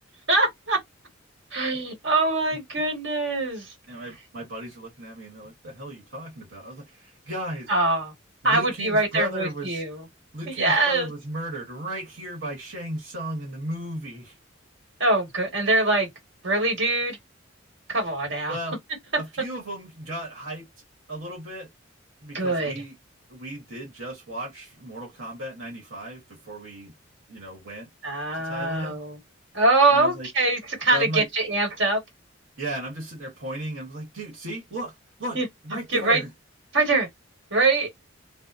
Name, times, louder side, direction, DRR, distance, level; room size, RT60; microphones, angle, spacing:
voice 1, 0.3-0.8 1.5-3.7 7.7-8.1 8.4-10.0 10.5-11.1 15.0-16.1 16.4-17.2 17.9-18.6 22.3-22.7 28.0-29.2 29.5-32.0 35.3-35.5 35.9-36.2 36.7-37.1 37.5-37.9, right 2 dB, 60° right, 1.5 m, -23 dB
voice 2, 3.9-7.7 8.4-9.8 10.3-14.4 18.5-18.8 19.2-20.6 21.1-21.7 22.2-23.0 23.3-26.9 27.3-27.9 28.3-29.0 29.9-30.3 30.9-31.3 32.6-34.9 35.2-35.4 35.6-36.3, right 1 dB, 75° right, 1.2 m, -35 dB
2.8 x 2.1 x 2.4 m
head